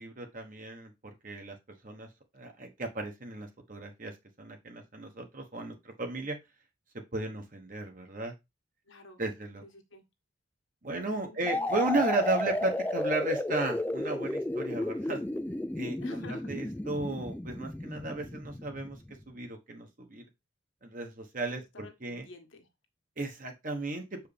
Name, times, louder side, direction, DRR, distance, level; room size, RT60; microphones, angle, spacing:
voice 1, 0.0-1.6 1.8-2.1 2.3-6.4 7.1-8.3 9.2-9.6 10.8-15.2 15.7-19.0 19.3-20.3 20.8-22.3 23.2-24.2, right 2 dB, 40° right, 4 dB, 1.2 m, -35 dB
voice 2, 8.8-9.2 9.6-10.0 11.3-11.7 12.2-12.3 16.0-16.5 21.5-22.7, left 2 dB, 75° left, 5 dB, 1.5 m, -49 dB
sound 1, 11.5-19.1, left 1 dB, 10° left, 0.3 m, -33 dB
6.7 x 4.7 x 3.3 m, 0.21 s
head